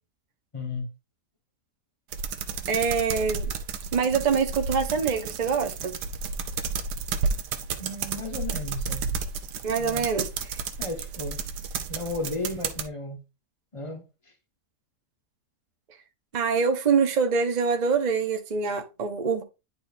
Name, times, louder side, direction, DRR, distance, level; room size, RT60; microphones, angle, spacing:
voice 1, 0.5-0.9 7.8-9.0 9.8-10.1 10.8-11.4 11.9-13.2 13.7-14.0, left 2 dB, 25° left, 0.9 m, -34 dB
sound 1, 2.1-12.9, right 5 dB, 80° right, 1.4 m, -32 dB
voice 2, 2.7-3.5 3.9-6.0 9.6-10.6 16.3-19.4, right 5 dB, 40° right, 0.6 m, -25 dB
10.5 x 4.3 x 2.6 m
omnidirectional pair, 1.8 m